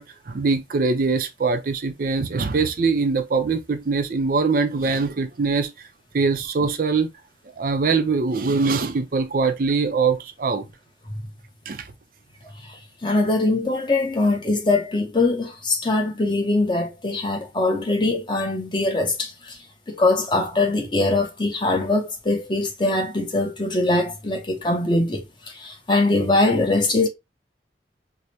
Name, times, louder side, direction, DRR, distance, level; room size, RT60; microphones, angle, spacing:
voice 1, 0.0-5.9 6.1-7.1 7.6-10.7 11.7-11.9, right 4 dB, 50° right, 0.4 m, -22 dB
voice 2, 13.0-19.6 19.9-25.3 25.5-27.1, left 2 dB, 25° left, 0.7 m, -22 dB
4.8 x 2.0 x 2.7 m
head